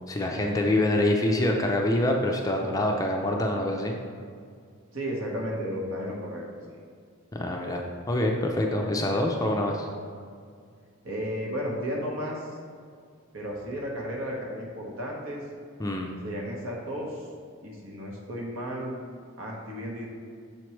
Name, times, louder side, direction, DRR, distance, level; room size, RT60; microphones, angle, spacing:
voice 1, 0.1-3.9 7.3-9.9 15.8-16.1, left 1 dB, 15° left, 1 dB, 0.4 m, -25 dB
voice 2, 4.9-6.8 11.0-12.6 13.3-15.4 16.2-17.3 17.6-18.9 19.4-20.1, equal, 65° right, -2 dB, 1.1 m, -33 dB
6.9 x 4.5 x 3.1 m, 2.2 s
head